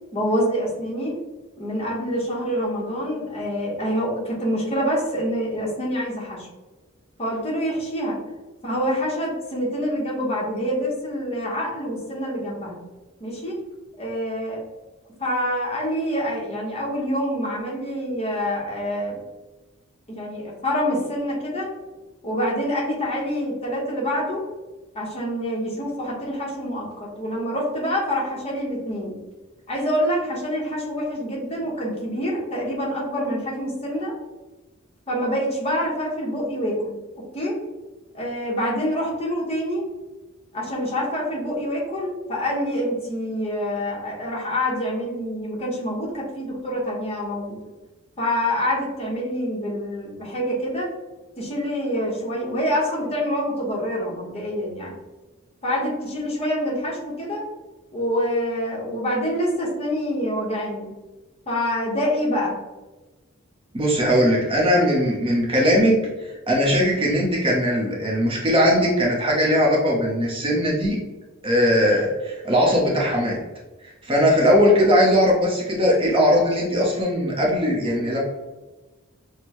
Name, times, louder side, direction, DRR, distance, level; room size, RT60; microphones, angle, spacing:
voice 1, 0.1-1.1 1.6-6.5 7.2-8.2 8.6-12.8 13.2-13.6 14.0-14.6 15.2-19.2 20.1-21.7 22.2-24.4 24.9-29.2 29.7-34.1 35.1-37.0 37.3-37.6 38.1-39.8 40.5-47.6 48.2-50.9 51.4-54.9 55.6-57.5 57.9-60.9 61.5-62.6, equal, 30° left, -3 dB, 1.1 m, -26 dB
voice 2, 63.7-71.0 71.4-73.4 74.0-78.2, equal, 25° right, -2 dB, 0.8 m, -19 dB
6.1 x 2.2 x 3.0 m, 1.2 s
head